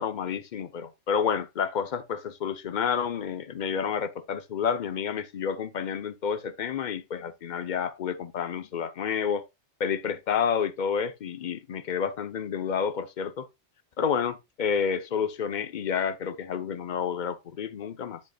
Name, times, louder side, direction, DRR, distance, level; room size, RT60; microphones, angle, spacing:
voice 1, 0.0-9.4 9.8-13.5 14.0-18.2, left 7 dB, 45° left, 0.7 m, -29 dB
7.8 x 7.1 x 2.2 m
omnidirectional pair, 1.2 m